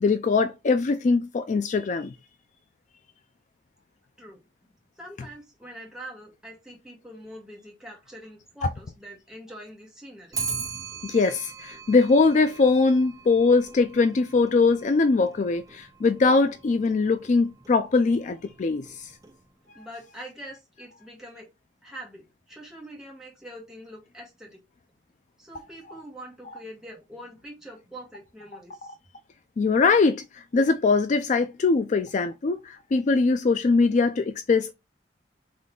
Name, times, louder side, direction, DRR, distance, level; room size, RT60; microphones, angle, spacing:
voice 1, 0.0-2.2 11.0-19.1 25.5-25.6 29.6-34.7, left 4 dB, 40° left, 0.4 m, -22 dB
voice 2, 5.0-10.4 19.7-21.5 21.8-24.6 25.4-29.0, right 1 dB, 5° right, 1.6 m, -44 dB
Clock, 10.3-19.7, right 5 dB, 20° right, 0.6 m, -40 dB
4.0 x 3.2 x 3.6 m
head